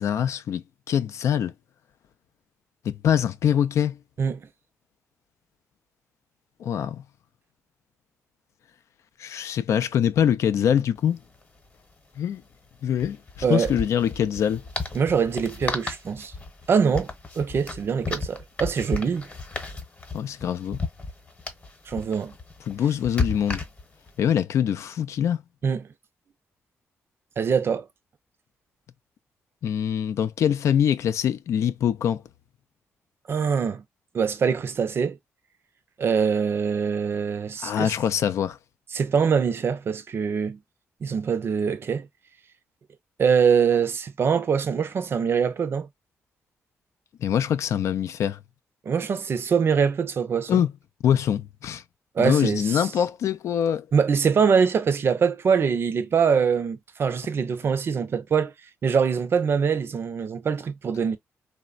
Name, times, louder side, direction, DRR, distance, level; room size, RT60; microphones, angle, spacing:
voice 1, 0.0-1.5 2.8-4.0 6.6-7.0 9.2-11.2 12.2-12.4 12.8-14.6 20.1-20.8 22.7-23.6 24.2-25.4 29.6-32.2 37.6-38.6 47.2-48.4 50.5-50.7 51.0-51.8 52.2-53.8, left 9 dB, 75° left, 0.3 m, -24 dB
sound 1, 11.0-11.1 11.3-11.4 12.9-24.1, left 3 dB, 25° left, 0.9 m, -34 dB
voice 2, 14.9-16.3 16.7-19.3 21.9-22.3 25.6-25.8 27.4-27.9 33.3-33.8 34.1-35.2 36.0-37.9 38.9-40.6 41.0-42.1 43.2-45.9 48.9-50.6 52.2-52.9 53.9-58.5 58.8-61.2, right 6 dB, 50° right, 0.5 m, -23 dB
3.1 x 2.1 x 2.3 m
cardioid pair, 90°, 5 cm